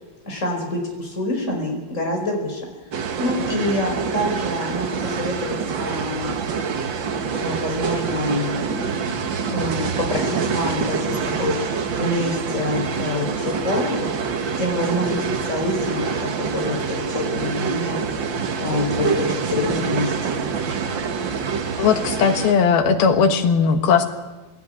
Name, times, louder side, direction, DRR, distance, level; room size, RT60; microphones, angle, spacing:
voice 1, 0.3-2.6 3.2-6.3 7.3-11.6 11.9-18.0 18.6-20.5, left 1 dB, 20° left, 1 dB, 5.3 m, -26 dB
sound 1, 2.9-22.5, right 6 dB, 70° right, 1.1 m, -26 dB
voice 2, 21.8-24.1, left 6 dB, 90° left, 7 dB, 3.4 m, -18 dB
21.5 x 17.5 x 9.4 m, 1.2 s
omnidirectional pair, 4.2 m